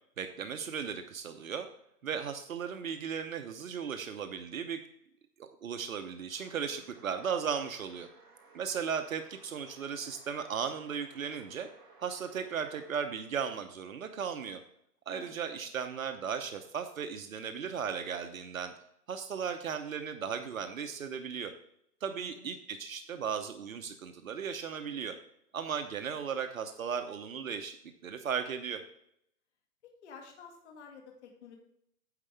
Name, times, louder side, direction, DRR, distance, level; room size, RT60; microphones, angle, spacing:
voice 1, 0.2-1.7 2.0-4.8 5.4-8.1 8.5-11.7 12.0-14.6 15.1-18.7 19.1-21.5 22.0-25.2 25.5-27.8 28.0-28.8, right 7 dB, 55° right, 7 dB, 1.0 m, -36 dB
sound 1, 6.3-13.0, right 4 dB, 10° right, 1.1 m, -59 dB
voice 2, 22.1-22.5 29.8-31.6, left 5 dB, 45° left, 2 dB, 2.1 m, -51 dB
9.7 x 7.7 x 3.4 m, 0.73 s
hypercardioid pair, 160°, 49 cm